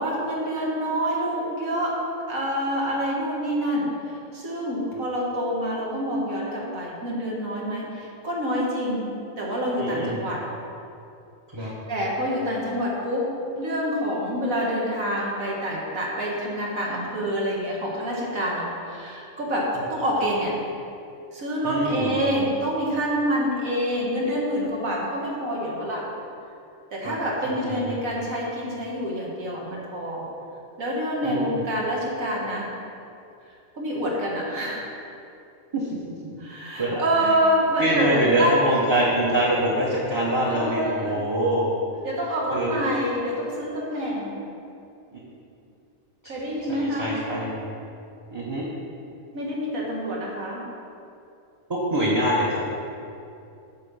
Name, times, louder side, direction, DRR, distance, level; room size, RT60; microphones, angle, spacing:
voice 1, 0.0-2.0 2.3-10.4 11.6-13.3 13.6-20.5 21.3-26.0 26.9-30.2 30.8-32.7 33.8-34.9 36.4-38.8 40.5-41.2 42.0-44.4 46.3-47.1 49.3-50.6, equal, 85° right, -4 dB, 2.0 m, -27 dB
voice 2, 9.8-10.2 11.5-11.7 21.6-22.1 27.0-27.2 27.4-28.0 31.2-31.6 35.7-36.3 36.8-37.4 37.8-41.7 42.5-42.8 45.1-45.2 46.8-47.5 48.3-48.7 51.7-52.6, right 1 dB, 25° right, -6 dB, 0.9 m, -25 dB
8.5 x 4.0 x 6.9 m, 2.6 s
omnidirectional pair, 1.4 m